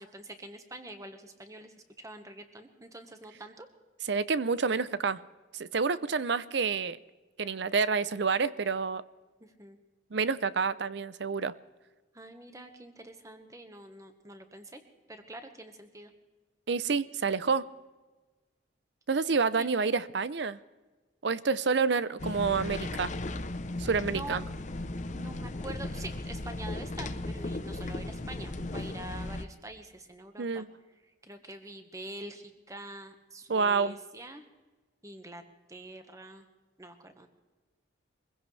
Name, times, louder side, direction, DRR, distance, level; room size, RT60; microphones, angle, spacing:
voice 1, 0.0-3.7 9.4-9.8 12.1-14.8 15.1-16.1 19.6-19.7 23.8-24.4 25.1-30.7 31.2-34.4 35.0-35.4 35.7-36.4 36.8-37.3, right 2 dB, 15° right, 1.3 m, -45 dB
voice 2, 4.1-5.2 5.5-7.0 7.4-9.0 10.1-11.5 16.7-17.7 19.1-20.6 21.2-23.1 23.8-24.4 30.4-30.7 33.5-34.0, right 5 dB, 65° right, 0.6 m, -28 dB
sound 1, 22.2-29.5, left 2 dB, 40° left, 0.7 m, -36 dB
24.0 x 16.0 x 3.3 m
head